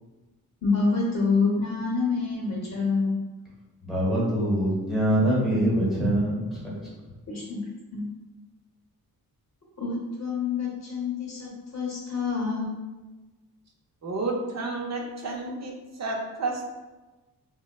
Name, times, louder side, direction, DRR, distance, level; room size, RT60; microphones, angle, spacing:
voice 1, 0.6-3.1 7.3-7.6 7.9-8.0 9.8-12.7, left 4 dB, 45° left, -5 dB, 0.8 m, -27 dB
voice 2, 3.8-6.9, right 1 dB, ahead, -7 dB, 1.1 m, -24 dB
voice 3, 14.0-15.7 16.0-16.7, right 3 dB, 45° right, 0 dB, 0.6 m, -30 dB
4.5 x 2.1 x 2.2 m, 1.2 s
wide cardioid pair, 145°, 37 cm